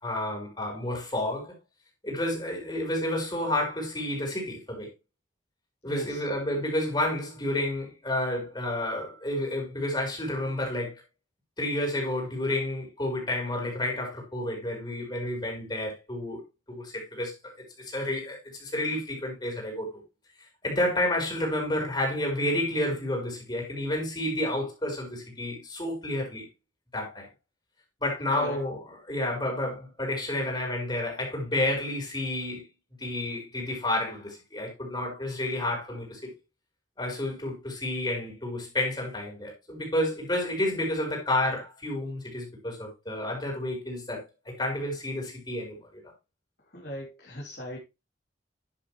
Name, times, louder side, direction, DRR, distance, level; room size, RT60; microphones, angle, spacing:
voice 1, 0.0-1.5 2.0-4.9 5.8-11.0 11.6-16.4 16.7-17.3 17.8-19.9 20.6-26.5 26.9-27.3 28.0-28.8 29.1-32.6 33.0-36.3 37.0-46.0, left 1 dB, 25° left, 4.7 m, -30 dB
voice 2, 5.8-6.2 28.3-28.6 46.7-47.8, equal, 55° left, 3.5 m, -38 dB
11.5 x 7.3 x 3.2 m
head